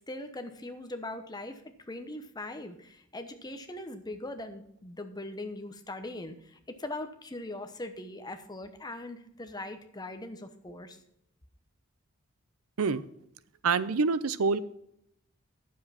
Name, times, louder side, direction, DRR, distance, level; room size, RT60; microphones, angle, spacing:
voice 1, 0.1-11.0, left 2 dB, 20° left, 7 dB, 0.9 m, -41 dB
voice 2, 13.6-14.6, right 4 dB, 80° right, 15 dB, 0.6 m, -26 dB
9.7 x 7.5 x 5.7 m, 0.73 s
head